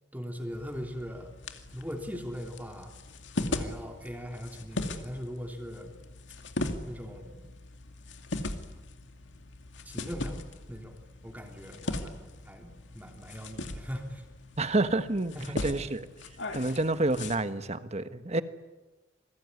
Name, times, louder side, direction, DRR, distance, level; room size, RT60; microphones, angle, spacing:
voice 1, 0.1-1.3 1.7-2.9 3.3-6.0 6.8-7.4 9.8-10.4 10.7-11.0 11.2-14.2 15.3-15.8 16.6-16.9, equal, 10° right, 2 dB, 3.1 m, -40 dB
sound 1, 0.5-17.4, left 2 dB, 70° left, 2.4 m, -39 dB
voice 2, 14.6-15.3 15.6-16.1 16.5-18.4, right 2 dB, 35° right, 10 dB, 1.4 m, -28 dB
28.0 x 21.0 x 9.7 m, 1.2 s
head